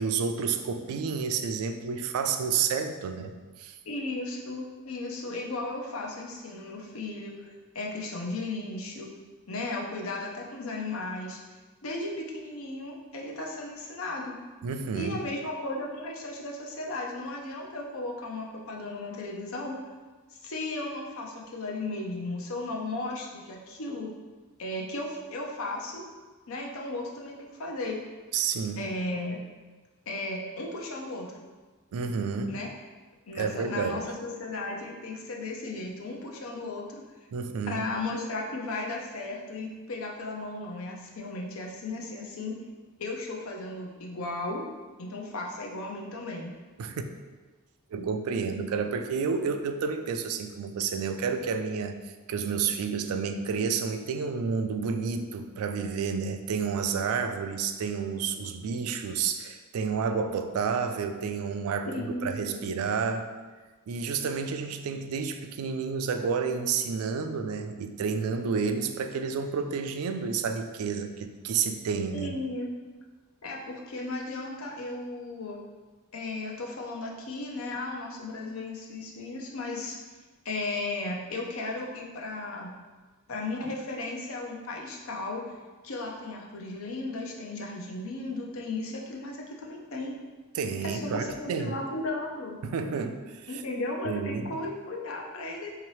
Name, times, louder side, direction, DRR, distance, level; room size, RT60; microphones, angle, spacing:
voice 1, 0.0-3.8 14.6-15.2 28.3-28.8 31.9-32.6 33.4-34.0 37.3-37.8 46.8-47.1 47.9-51.9 52.3-61.9 62.2-63.3 63.9-72.4 90.5-91.7 92.6-93.6 94.0-94.5, right 5 dB, 85° right, 8 dB, 0.3 m, -30 dB
voice 2, 3.9-9.1 9.5-11.4 11.8-14.3 14.9-19.8 20.4-24.1 24.6-26.1 26.5-28.0 28.8-29.4 30.1-31.4 32.5-32.7 33.3-37.0 37.7-42.6 43.0-44.6 45.0-46.5 61.9-62.7 72.1-72.7 73.4-75.6 76.1-80.0 80.4-82.7 83.3-85.4 85.8-90.2 90.8-92.6 93.5-95.7, left 2 dB, 70° left, -1 dB, 0.6 m, -35 dB
3.7 x 2.8 x 3.1 m, 1.3 s
head